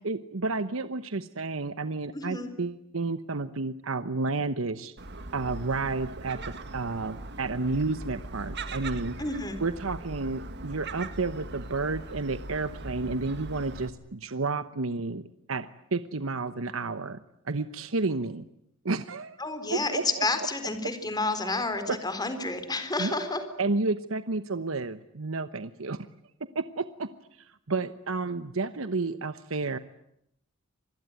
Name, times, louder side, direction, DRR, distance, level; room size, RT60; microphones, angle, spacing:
voice 1, 0.0-4.9 5.3-9.1 9.6-17.2 17.4-18.5 18.8-19.4 19.7-20.2 21.9-22.0 23.0-23.1 23.6-26.1 26.5-27.1 27.4-29.8, right 3 dB, 85° right, 12 dB, 1.1 m, -31 dB
voice 2, 2.1-2.5 9.2-9.6 19.4-23.4, left 3 dB, 20° left, 9 dB, 4.0 m, -30 dB
Gull seagull, 5.0-13.9, right 2 dB, 55° right, 2.1 m, -40 dB
27.0 x 21.0 x 9.2 m, 0.77 s
head